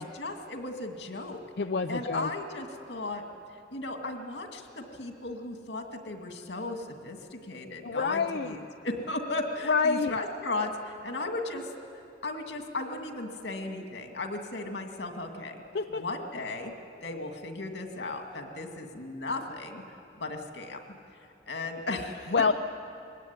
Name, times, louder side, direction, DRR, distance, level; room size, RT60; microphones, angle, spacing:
voice 1, 0.2-1.4 1.9-3.2 3.7-11.7 12.2-15.6 15.9-16.7 17.0-19.8 20.2-20.8 21.5-22.3, left 2 dB, 90° left, 4 dB, 2.2 m, -36 dB
voice 2, 1.6-2.3 7.8-8.6 9.7-10.2 15.7-16.0 22.3-22.5, left 4 dB, 65° left, 6 dB, 0.5 m, -27 dB
21.5 x 17.5 x 9.7 m, 2.6 s
head